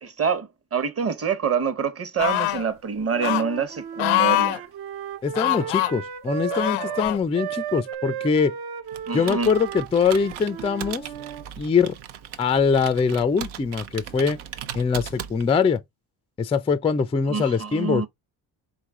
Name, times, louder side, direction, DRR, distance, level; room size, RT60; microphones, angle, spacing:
voice 1, 0.0-4.7 9.1-9.5 17.3-18.1, right 6 dB, 30° right, 0.9 m, -26 dB
sound 1, 2.2-2.7 3.2-3.4 4.0-4.6 5.3-5.9 6.5-7.2 7.9-8.0, left 16 dB, 90° left, 0.6 m, -23 dB
Wind instrument woodwind instrument, 3.1-11.5, right 9 dB, 50° right, 0.7 m, -35 dB
voice 2, 5.2-8.5 9.1-11.1 11.6-11.9 12.4-14.4 14.7-15.8 16.4-18.0, left 5 dB, 15° left, 0.3 m, -23 dB
Computer keyboard, 8.9-15.8, right 10 dB, 85° right, 0.7 m, -38 dB
4.1 x 3.2 x 3.6 m
supercardioid pair, 75°, 47 cm